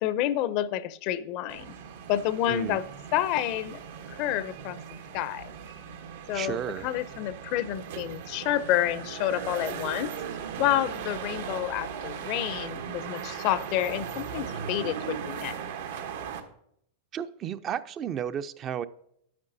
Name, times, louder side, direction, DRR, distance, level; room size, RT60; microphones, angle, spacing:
voice 1, 0.0-1.7 2.1-2.8 3.1-3.8 4.1-4.8 5.1-5.5 6.3-10.1 10.6-15.5, left 12 dB, 50° left, 16 dB, 0.5 m, -29 dB
sound 1, 1.5-16.4, right 7 dB, 75° right, 1.1 m, -38 dB
voice 2, 2.5-2.8 6.3-6.9 17.1-18.9, right 9 dB, 35° right, 12 dB, 0.4 m, -33 dB
9.5 x 8.9 x 2.7 m, 0.71 s
hypercardioid pair, 120°, 0 cm